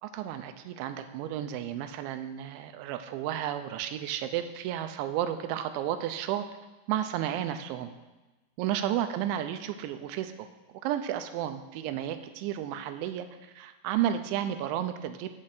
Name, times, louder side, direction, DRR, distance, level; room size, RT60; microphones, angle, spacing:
voice 1, 0.0-6.4 6.9-7.9 8.6-10.3 10.8-13.3 13.6-15.3, right 11 dB, 85° right, 9 dB, 2.9 m, -32 dB
9.7 x 6.4 x 5.8 m, 1.1 s
omnidirectional pair, 5.3 m